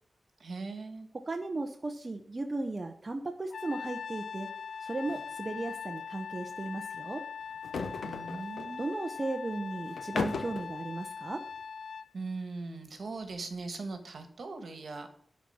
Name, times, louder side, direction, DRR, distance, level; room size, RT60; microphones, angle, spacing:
voice 1, 0.4-1.1 8.0-8.8 12.1-15.1, right 3 dB, 60° right, 7 dB, 1.6 m, -40 dB
voice 2, 1.1-4.5 4.8-7.2 8.8-11.4, right 2 dB, 30° right, 4 dB, 0.7 m, -36 dB
Trumpet, 3.5-12.1, left 6 dB, 65° left, 0.4 m, -41 dB
sound 1, 5.1-5.3 5.6-5.7 7.5-8.7 9.9-10.7, left 4 dB, 90° left, 1.0 m, -36 dB
12.0 x 4.2 x 7.2 m, 0.62 s
wide cardioid pair, 170°, 0 cm